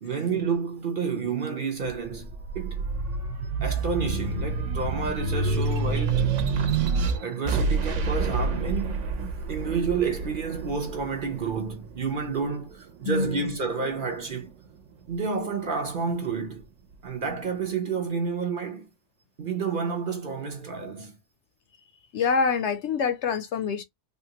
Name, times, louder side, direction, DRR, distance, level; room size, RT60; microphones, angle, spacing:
voice 1, 0.0-2.8 3.6-6.4 7.2-9.1 9.5-14.5 15.1-16.7 17.0-18.9 19.4-21.2, right 5 dB, 50° right, 0.8 m, -30 dB
sound 1, 2.0-12.7 13.2-14.3, right 4 dB, 70° right, 1.0 m, -28 dB
voice 2, 13.1-13.5 22.1-23.8, left 5 dB, 65° left, 0.8 m, -26 dB
3.6 x 2.3 x 2.8 m
omnidirectional pair, 1.4 m